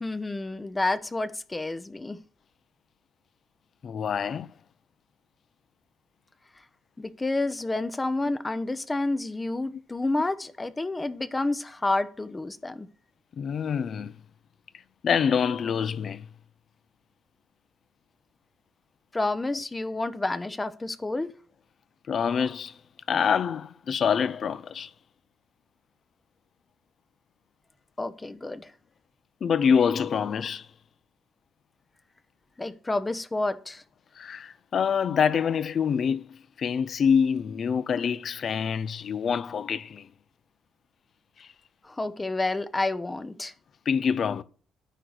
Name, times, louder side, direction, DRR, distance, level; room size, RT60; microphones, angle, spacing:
voice 1, 0.0-2.2 7.0-12.9 19.1-21.3 28.0-28.7 32.6-33.8 41.9-43.5, left 2 dB, 20° left, 0.8 m, -29 dB
voice 2, 3.8-4.5 13.4-14.1 15.0-16.3 22.1-22.8 23.1-24.9 29.4-30.7 34.2-40.1 41.4-41.5 43.9-44.4, left 7 dB, 50° left, 0.6 m, -26 dB
10.0 x 4.6 x 6.6 m
cardioid pair, 95°, 0 cm